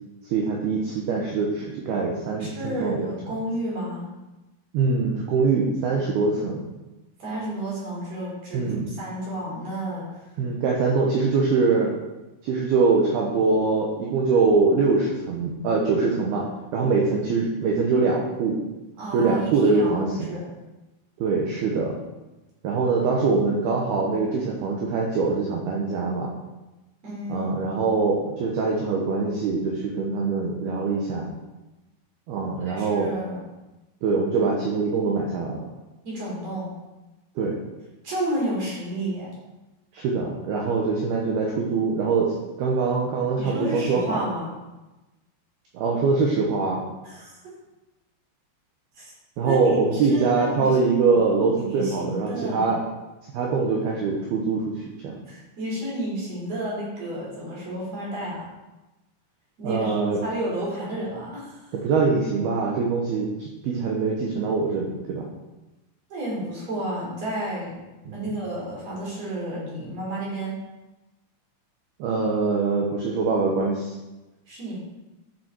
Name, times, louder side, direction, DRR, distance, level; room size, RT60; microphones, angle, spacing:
voice 1, 0.3-3.0 4.7-6.7 8.5-8.9 10.4-11.9 12.4-16.5 16.7-18.6 19.1-20.3 21.2-21.9 22.6-26.3 27.3-31.3 32.3-33.1 34.0-35.6 37.4-37.6 39.9-44.2 45.7-46.8 49.4-52.8 53.3-55.1 59.6-60.2 61.8-65.3 68.1-68.3 72.0-73.9, right 4 dB, 75° right, -2 dB, 2.4 m, -23 dB
voice 2, 2.4-4.1 7.2-10.4 19.0-20.5 27.0-27.5 32.7-33.4 36.0-36.7 38.0-39.3 43.4-44.6 47.0-47.4 48.9-49.1 49.4-50.8 51.1-51.2 51.6-52.7 55.2-58.4 59.6-61.7 66.1-67.9 68.1-70.6 74.5-74.8, right 1 dB, 35° right, -5 dB, 4.1 m, -31 dB
11.5 x 7.1 x 4.5 m, 1.1 s
omnidirectional pair, 5.9 m